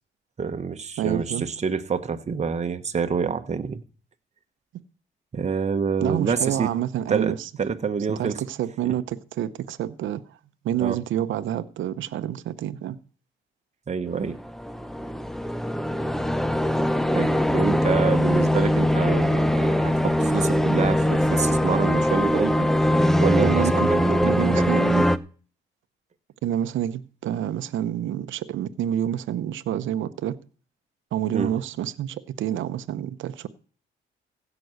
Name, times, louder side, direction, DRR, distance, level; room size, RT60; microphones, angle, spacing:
voice 1, 0.4-3.8 5.3-6.7 7.1-8.4 10.8-11.0 13.9-14.4 17.1-22.7 23.2-24.9 31.3-31.5, right 5 dB, 35° right, 1.2 m, -27 dB
voice 2, 1.0-1.4 6.0-7.5 8.2-10.4 10.6-13.0 23.4-25.0 26.4-30.4 31.1-33.5, right 11 dB, 75° right, 0.8 m, -28 dB
sound 1, 14.3-25.2, left 1 dB, ahead, 0.7 m, -22 dB
16.0 x 6.1 x 6.5 m
cardioid pair, 90°, 20 cm